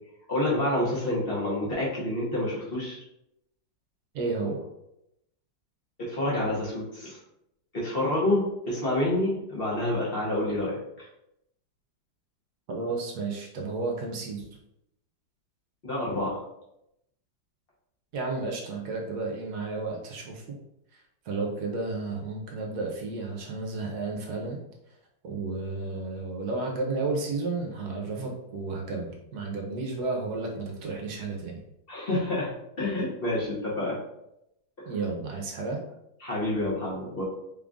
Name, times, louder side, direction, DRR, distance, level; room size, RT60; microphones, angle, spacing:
voice 1, 0.3-3.0 6.0-7.2 7.7-11.1 15.8-16.4 31.9-34.0 34.8-34.9 36.2-37.2, left 1 dB, 45° left, -5 dB, 0.8 m, -28 dB
voice 2, 4.1-4.7 12.7-14.5 18.1-20.6 20.9-24.6 25.2-31.6 34.8-35.8, right 3 dB, 65° right, 1 dB, 1.1 m, -32 dB
3.7 x 2.4 x 3.6 m, 0.84 s
omnidirectional pair, 2.1 m